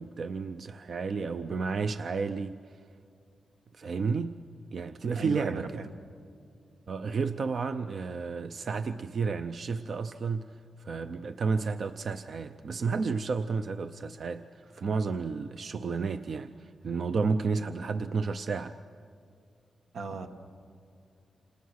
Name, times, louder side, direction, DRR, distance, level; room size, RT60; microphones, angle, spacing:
voice 1, 0.0-2.6 3.7-4.4 4.7-5.7 6.9-10.5 10.8-18.8, right 4 dB, 50° right, 10 dB, 0.6 m, -31 dB
voice 2, 5.1-5.9 19.9-20.3, right 3 dB, 80° right, 6 dB, 1.6 m, -37 dB
29.0 x 27.5 x 6.5 m, 2.3 s
wide cardioid pair, 155°, 0 cm